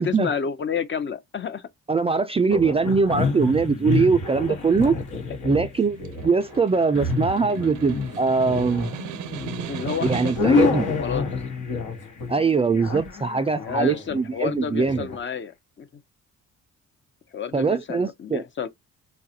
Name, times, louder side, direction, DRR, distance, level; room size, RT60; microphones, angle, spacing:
voice 1, 0.0-1.7 4.5-4.6 4.8-4.9 9.7-11.3 13.5-15.9 17.3-18.7, left 7 dB, 40° left, 0.6 m, -30 dB
voice 2, 1.9-4.9 5.4-6.0 6.2-8.9 10.0-10.9 12.3-15.1 17.5-18.4, right 4 dB, 20° right, 0.3 m, -22 dB
sound 1, 2.5-15.2, left 5 dB, 80° left, 1.2 m, -28 dB
Snare drum, 5.8-10.7, right 10 dB, 80° right, 0.6 m, -37 dB
4.1 x 2.3 x 2.7 m
cardioid pair, 90°, 30 cm